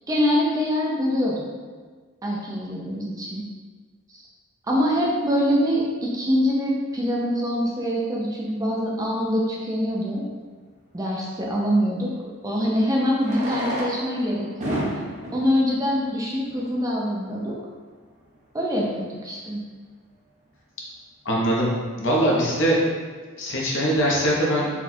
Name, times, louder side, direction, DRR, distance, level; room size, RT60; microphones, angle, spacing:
voice 1, 0.1-1.4 2.2-3.5 4.1-4.2 4.7-10.2 10.9-12.1 12.4-14.8 15.3-17.6 18.5-19.6, equal, 15° right, -3 dB, 0.4 m, -24 dB
Fireworks, 9.6-9.7 12.0-12.1 13.1-16.9 17.6-17.7 17.9-18.0 18.2-18.3 18.8-19.1, equal, 35° right, 0.9 m, -32 dB
voice 2, 21.2-21.7 22.0-22.8 23.4-24.7, right 1 dB, 60° left, -4 dB, 0.9 m, -21 dB
4.2 x 2.3 x 4.2 m, 1.5 s
head